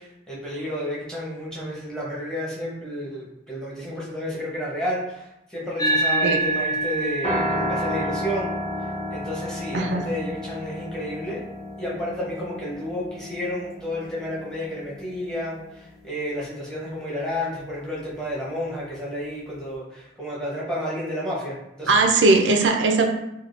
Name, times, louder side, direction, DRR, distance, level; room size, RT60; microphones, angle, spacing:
voice 1, 0.0-8.5 9.1-11.4 11.8-22.0 22.6-22.7, equal, 5° left, -6 dB, 0.8 m, -31 dB
sound 1, 5.8-14.5, right 2 dB, 20° left, 0.3 m, -30 dB
Piano, 7.2-15.5, equal, 35° left, 1.0 m, -32 dB
voice 2, 9.7-10.1 21.9-23.0, right 3 dB, 75° right, 3 dB, 0.4 m, -19 dB
3.4 x 2.2 x 2.4 m, 0.87 s
head